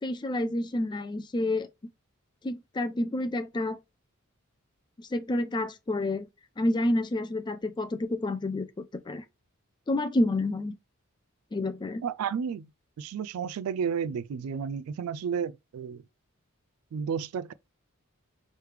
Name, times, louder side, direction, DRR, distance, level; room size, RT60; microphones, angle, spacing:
voice 1, 0.0-1.7 2.4-3.8 5.0-6.3 6.6-9.2 9.9-10.8 11.5-12.0, left 1 dB, 20° left, 0.4 m, -29 dB
voice 2, 12.0-12.7 13.0-16.0 16.9-17.5, right 7 dB, 85° right, 0.3 m, -32 dB
4.8 x 3.3 x 3.2 m
head